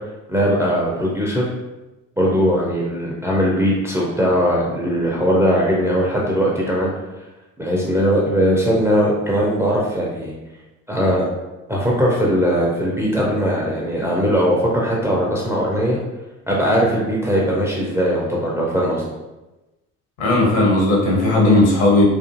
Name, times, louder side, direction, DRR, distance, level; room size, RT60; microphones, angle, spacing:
voice 1, 0.3-1.5 2.2-6.9 7.6-10.3 10.9-11.2 11.7-16.0 16.5-19.0, equal, 5° right, -4 dB, 0.3 m, -19 dB
voice 2, 20.2-22.0, left 2 dB, 65° left, -3 dB, 1.0 m, -15 dB
2.6 x 2.4 x 2.4 m, 1.1 s
figure-of-eight pair, 50°, 44 cm